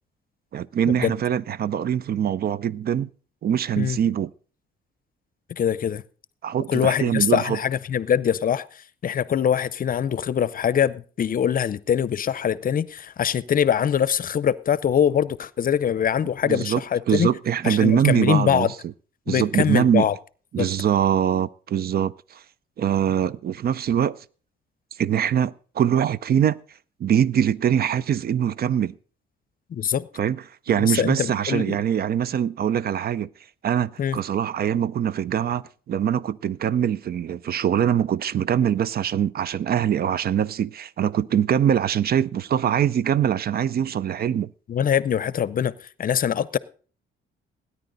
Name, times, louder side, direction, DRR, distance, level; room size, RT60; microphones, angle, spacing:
voice 1, 0.5-3.1 3.4-4.3 6.4-7.6 16.4-16.8 17.1-18.7 19.3-20.1 20.5-22.4 22.8-24.2 25.0-26.6 27.0-28.9 30.2-33.3 33.6-44.5, right 9 dB, 50° right, 0.5 m, -23 dB
voice 2, 5.5-6.0 6.7-8.7 9.0-17.3 17.6-18.7 19.3-20.1 20.6-20.7 29.7-30.1 30.8-31.8 34.0-34.2 44.7-45.7 46.0-46.6, left 8 dB, 45° left, 0.6 m, -23 dB
17.5 x 9.8 x 3.9 m
cardioid pair, 90°, 20 cm